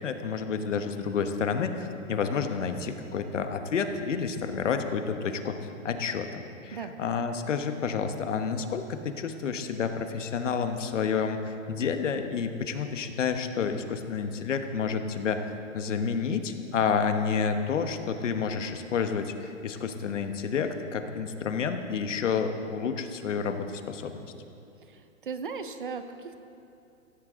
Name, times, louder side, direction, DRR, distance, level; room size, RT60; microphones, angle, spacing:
voice 1, 0.0-5.6 5.8-15.4 15.7-24.2, left 6 dB, 60° left, 7 dB, 1.2 m, -30 dB
voice 2, 24.8-26.4, right 5 dB, 40° right, 9 dB, 0.7 m, -37 dB
16.5 x 16.0 x 3.7 m, 2.6 s
hypercardioid pair, 175°, 40 cm